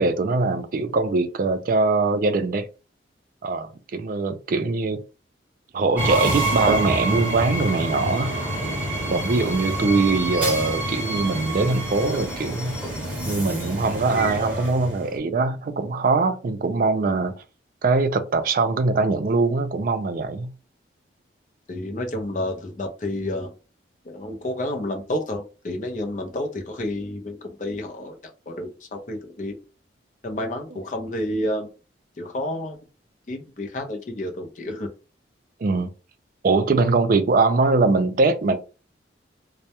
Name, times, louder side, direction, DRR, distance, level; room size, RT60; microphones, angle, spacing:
voice 1, 0.0-2.7 3.4-5.0 5.7-8.3 9.1-12.8 13.3-17.4 17.8-20.5 35.6-35.9 36.4-38.6, right 3 dB, 45° right, 0.3 m, -22 dB
Train, 6.0-15.2, right 1 dB, 10° right, 1.0 m, -27 dB
voice 2, 21.7-23.5 24.1-28.2 28.5-29.6 30.2-31.7 32.2-32.8 33.3-34.9, left 1 dB, 40° left, 0.5 m, -30 dB
2.2 x 2.0 x 2.8 m
head